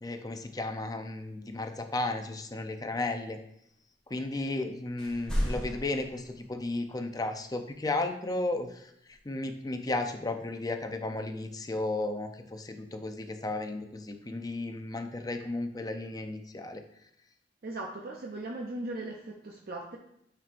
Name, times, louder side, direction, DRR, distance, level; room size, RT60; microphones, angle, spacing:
voice 1, 0.0-3.4 4.1-8.9 9.2-16.8, left 2 dB, 20° left, 6 dB, 0.5 m, -34 dB
sound 1, 5.0-6.6 9.1-9.2, equal, 5° left, 1.7 m, -33 dB
voice 2, 17.6-20.0, right 2 dB, 55° right, 0 dB, 0.6 m, -38 dB
9.1 x 4.4 x 2.5 m, 0.76 s
head